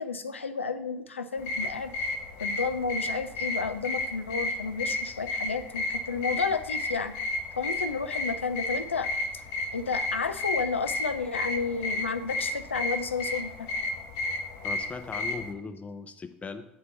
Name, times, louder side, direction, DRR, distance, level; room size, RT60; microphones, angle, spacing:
voice 1, 0.0-1.9 2.4-7.1 7.6-9.1 9.7-13.7, left 5 dB, 90° left, 9 dB, 0.4 m, -31 dB
sound 1, 1.4-15.5, left 2 dB, 60° left, 0.9 m, -33 dB
voice 2, 14.6-16.7, left 4 dB, 20° left, 8 dB, 0.6 m, -39 dB
7.7 x 2.9 x 5.7 m, 0.79 s
figure-of-eight pair, 70°, 7 cm